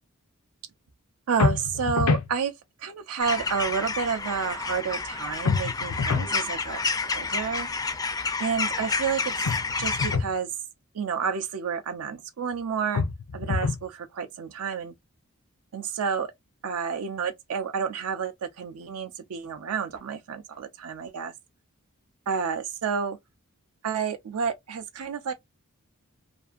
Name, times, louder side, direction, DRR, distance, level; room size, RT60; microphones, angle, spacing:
voice 1, 1.3-2.5 2.8-6.8 7.1-7.7 8.4-9.5 9.8-10.5 10.9-13.0 13.3-14.9 15.7-16.3 16.6-21.3 22.3-23.2 23.8-25.3, right 6 dB, 75° right, 0.4 m, -30 dB
sound 1, 1.4-2.3 5.5-6.3 9.4-10.3 12.9-13.9, left 4 dB, 85° left, 0.5 m, -26 dB
sound 2, 3.2-10.2, left 4 dB, 15° left, 0.3 m, -30 dB
2.5 x 2.5 x 2.4 m
head